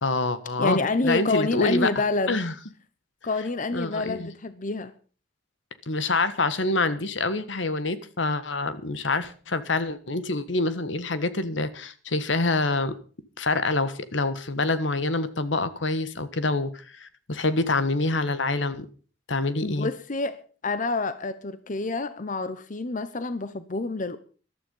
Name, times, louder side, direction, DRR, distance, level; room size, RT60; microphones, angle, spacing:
voice 1, 0.0-0.8 1.0-1.9 2.3-2.5 3.7-4.3 5.9-12.9 13.4-18.9 19.3-19.9, left 3 dB, 80° left, 1.5 m, -26 dB
voice 2, 0.6-2.4 3.2-4.9 19.6-24.2, left 3 dB, 45° left, 0.9 m, -28 dB
14.5 x 12.5 x 5.5 m
head